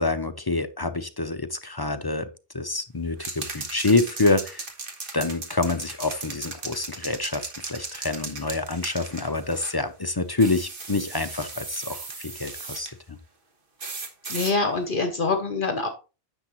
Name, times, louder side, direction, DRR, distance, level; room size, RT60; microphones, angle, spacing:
voice 1, 0.0-2.3 2.5-4.6 5.1-12.9, left 3 dB, 30° left, 9 dB, 0.5 m, -27 dB
sound 1, 3.2-9.8 10.4-12.9 13.8-14.5, right 4 dB, 55° right, 1.5 m, -37 dB
voice 2, 14.3-15.9, left 3 dB, 55° left, 6 dB, 1.1 m, -25 dB
10.0 x 7.0 x 3.0 m, 0.32 s
omnidirectional pair, 1.1 m